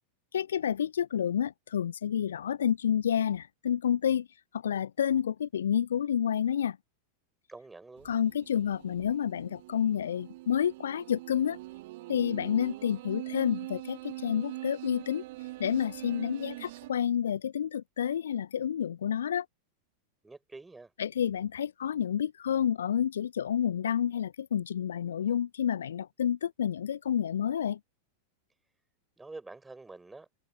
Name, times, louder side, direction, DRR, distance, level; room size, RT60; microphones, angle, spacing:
voice 1, 0.3-4.3 4.5-6.8 8.0-11.6 12.1-15.2 15.6-19.5 21.0-27.8, left 9 dB, 65° left, 0.7 m, -29 dB
voice 2, 7.5-8.1 20.2-20.9 29.2-30.3, right 3 dB, 10° right, 6.5 m, -47 dB
sound 1, 8.0-16.9, right 19 dB, 50° right, 2.9 m, -43 dB
figure-of-eight pair, 90°, 0 cm